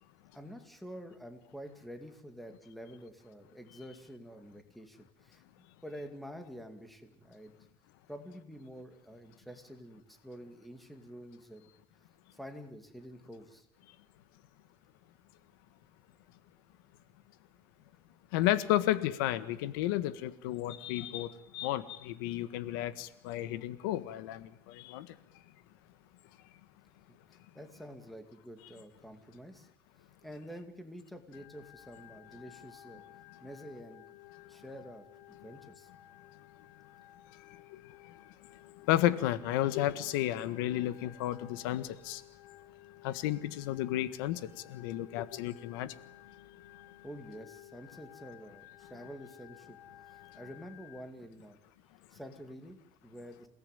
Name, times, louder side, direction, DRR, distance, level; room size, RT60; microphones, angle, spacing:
voice 1, 0.3-5.4 5.8-7.6 8.1-11.7 12.3-13.7 27.1-29.7 30.2-33.0 33.4-34.1 34.4-35.9 47.0-49.8 50.1-51.6 52.1-53.5, equal, ahead, 2.3 m, -48 dB
voice 2, 18.3-25.1 38.9-42.2 43.0-45.9, left 14 dB, 85° left, 1.6 m, -32 dB
Organ, 31.3-51.0, left 13 dB, 65° left, 3.7 m, -56 dB
28.0 x 18.5 x 9.1 m
cardioid pair, 160°, 11 cm